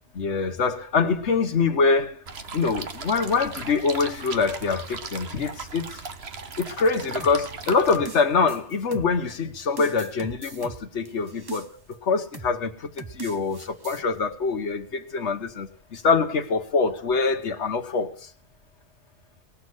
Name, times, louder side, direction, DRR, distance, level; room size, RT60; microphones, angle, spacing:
voice 1, 0.1-2.2 2.5-6.0 6.6-11.7 12.0-18.1, left 4 dB, 80° left, 1.5 m, -24 dB
sound 1, 2.3-8.0, right 4 dB, 65° right, 1.5 m, -37 dB
sound 2, 7.2-9.4 9.8-11.9 12.3-12.6 13.0-14.0, right 4 dB, 25° right, 0.8 m, -41 dB
19.0 x 7.1 x 7.9 m
omnidirectional pair, 1.2 m